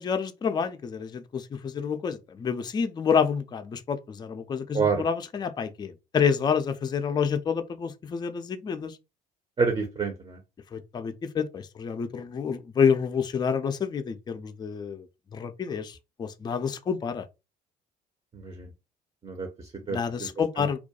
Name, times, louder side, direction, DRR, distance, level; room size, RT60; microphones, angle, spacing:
voice 1, 0.0-9.0 10.7-15.0 15.3-17.2 19.9-20.8, left 6 dB, 20° left, 0.4 m, -28 dB
voice 2, 9.6-10.4 18.3-18.7 19.2-20.3 20.6-20.7, right 5 dB, 25° right, 0.6 m, -28 dB
2.3 x 2.1 x 2.8 m
figure-of-eight pair, 50°, 21 cm